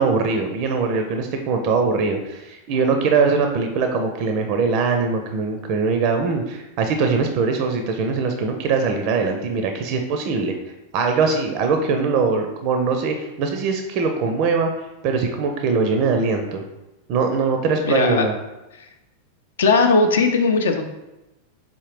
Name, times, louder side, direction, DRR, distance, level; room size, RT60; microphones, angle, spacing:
voice 1, 0.0-10.5 10.9-14.7 15.0-16.6 17.1-18.3, right 4 dB, 45° right, 5 dB, 0.4 m, -21 dB
voice 2, 17.8-18.3 19.6-20.8, left 4 dB, 65° left, 5 dB, 0.5 m, -18 dB
4.1 x 3.8 x 3.1 m, 0.98 s
figure-of-eight pair, 90°, 0 cm